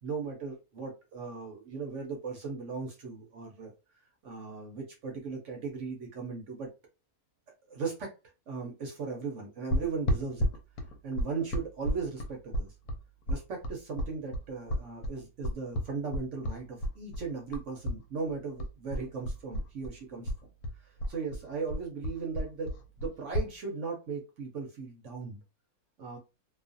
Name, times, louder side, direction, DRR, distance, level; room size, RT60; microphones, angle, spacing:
voice 1, 0.0-3.7 4.2-6.7 7.7-8.1 8.5-10.5 11.0-12.7 13.3-20.3 20.8-25.4 26.0-26.2, right 4 dB, 60° right, 0.9 m, -37 dB
sound 1, 9.7-18.0 18.3-20.0 20.2-23.5, equal, 85° left, 1.1 m, -32 dB
2.5 x 2.4 x 2.5 m
omnidirectional pair, 1.6 m